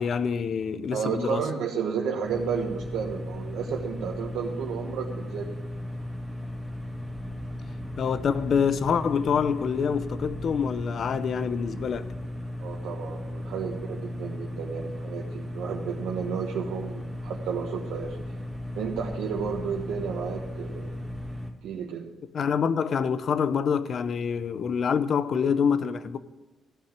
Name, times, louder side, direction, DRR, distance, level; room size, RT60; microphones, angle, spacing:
voice 1, 0.0-1.4 8.0-12.1 22.3-26.2, left 6 dB, 55° left, 0.8 m, -26 dB
voice 2, 0.9-5.5 12.6-18.2 18.7-21.0 21.6-22.1, right 6 dB, 85° right, 1.4 m, -32 dB
hum of a machine behind metal door, 2.2-21.5, left 1 dB, 5° right, 2.0 m, -36 dB
15.0 x 5.9 x 9.0 m
cardioid pair, 90°, 0 cm